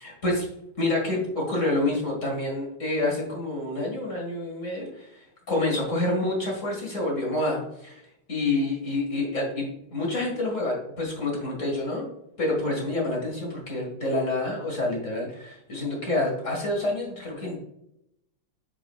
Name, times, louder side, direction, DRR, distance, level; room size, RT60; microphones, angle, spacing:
voice 1, 0.0-0.5 0.8-8.0 8.3-12.1 12.4-17.6, left 2 dB, 40° left, -2 dB, 2.1 m, -28 dB
8.6 x 4.9 x 2.3 m, 0.80 s
omnidirectional pair, 2.2 m